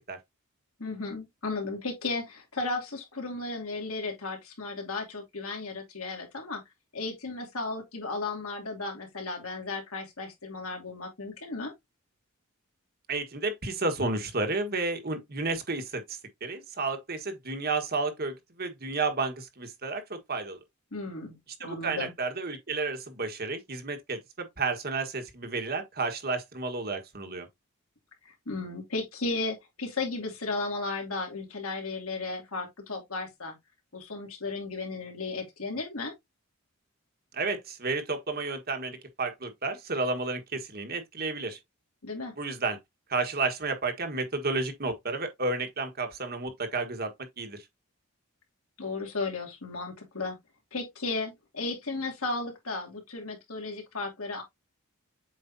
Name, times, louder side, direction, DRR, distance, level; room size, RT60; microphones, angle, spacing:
voice 1, 0.8-6.6 6.9-11.7 20.9-22.1 28.2-33.6 33.9-36.1 42.0-42.3 48.8-50.4 50.7-54.4, left 3 dB, 80° left, 2.6 m, -35 dB
voice 2, 13.1-20.6 21.6-27.5 37.3-41.6 42.4-42.8 43.1-47.6, right 3 dB, 45° right, 1.4 m, -32 dB
7.8 x 4.9 x 2.7 m
head